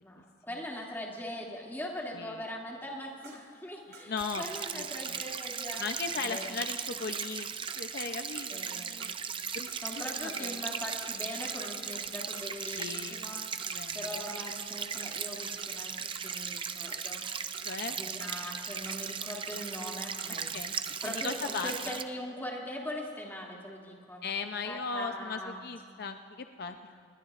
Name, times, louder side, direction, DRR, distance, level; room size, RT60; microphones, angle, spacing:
voice 1, 0.0-5.8 6.1-6.5 8.5-9.0 9.8-13.4 13.9-17.3 17.9-20.5 21.0-24.2 24.7-25.7, left 1 dB, 10° left, -2 dB, 2.4 m, -41 dB
voice 2, 2.1-2.4 4.1-4.4 4.7-5.2 5.8-9.7 10.0-10.6 12.8-13.2 13.7-14.1 17.7-18.0 20.5-20.7 21.1-22.0 24.2-27.1, left 4 dB, 65° left, 7 dB, 0.6 m, -38 dB
sound 1, 3.1-10.1 10.3-11.4 11.6-12.7 12.9-21.3, right 5 dB, 70° right, 1.5 m, -53 dB
sound 2, 4.2-22.0, right 7 dB, 30° right, 0.5 m, -37 dB
27.5 x 21.0 x 2.5 m, 2.2 s
head